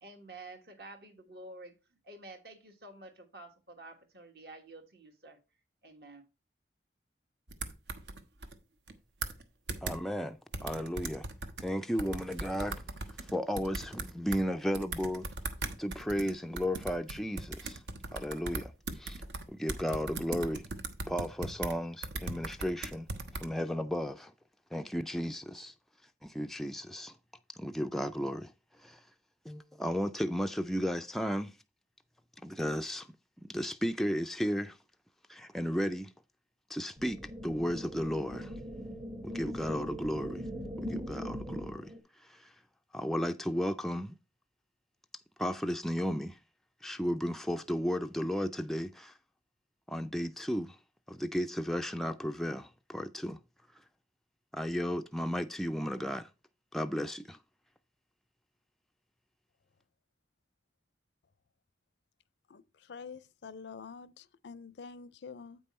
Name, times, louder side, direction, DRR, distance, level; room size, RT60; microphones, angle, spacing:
voice 1, 0.0-1.7 2.0-5.4 5.8-6.2, right 2 dB, 60° right, 1.4 m, -50 dB
sound 1, 7.5-8.6 8.9-9.0 9.2-9.4 9.7-10.0 10.5-11.7 12.0-14.4 14.7-21.7 22.0-23.5, right 3 dB, 75° right, 0.9 m, -38 dB
voice 2, 9.8-11.2 11.6-12.8 13.2-15.3 15.8-17.8 18.1-20.6 21.1-23.1 23.3-24.3 24.7-25.7 26.2-27.2 27.6-28.5 28.8-29.0 29.5-31.5 32.4-33.1 33.4-34.8 35.3-36.1 36.7-38.5 39.2-40.4 40.8-41.9 42.2-42.5 42.9-44.2 45.4-46.4 46.8-49.1 49.9-50.8 51.1-53.4 54.5-56.3 56.7-57.4, equal, ahead, 0.3 m, -34 dB
sound 2, 37.0-42.0, equal, 30° right, 0.9 m, -40 dB
voice 3, 62.9-65.6, left 5 dB, 75° left, 0.5 m, -47 dB
8.4 x 5.4 x 4.2 m
head